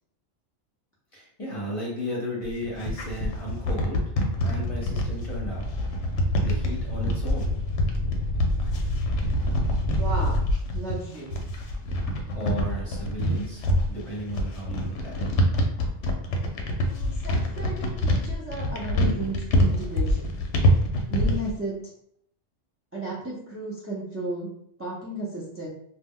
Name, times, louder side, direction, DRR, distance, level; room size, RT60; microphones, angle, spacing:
voice 1, 1.1-4.1 4.4-5.7 6.4-7.6 12.3-15.3 19.1-19.2, equal, 30° left, -5 dB, 0.8 m, -34 dB
sound 1, 2.4-21.5, equal, 70° left, 0.8 m, -26 dB
sound 2, 4.6-10.5, left 1 dB, 65° right, 1.1 m, -28 dB
voice 2, 10.0-10.4 10.7-11.4 16.8-20.3 21.1-21.8 22.9-24.5 24.8-25.7, right 1 dB, 20° right, -7 dB, 0.4 m, -34 dB
2.3 x 2.1 x 3.5 m, 0.70 s
omnidirectional pair, 1.3 m